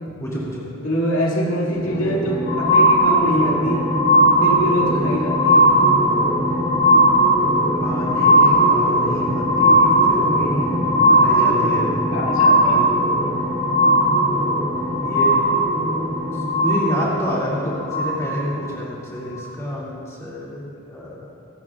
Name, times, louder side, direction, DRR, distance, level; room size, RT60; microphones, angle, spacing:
voice 1, 0.2-0.7 7.8-11.9 15.0-15.4 16.3-21.3, left 1 dB, 15° left, -7 dB, 2.3 m, -28 dB
voice 2, 0.8-3.9 4.4-5.7 12.1-12.8, equal, 70° left, -4 dB, 2.3 m, -24 dB
sound 1, 1.6-17.2, right 1 dB, 60° right, 2.2 m, -32 dB
sound 2, 1.8-18.6 19.3-19.4, equal, 45° left, 3.2 m, -18 dB
22.5 x 11.5 x 2.4 m, 2.7 s
head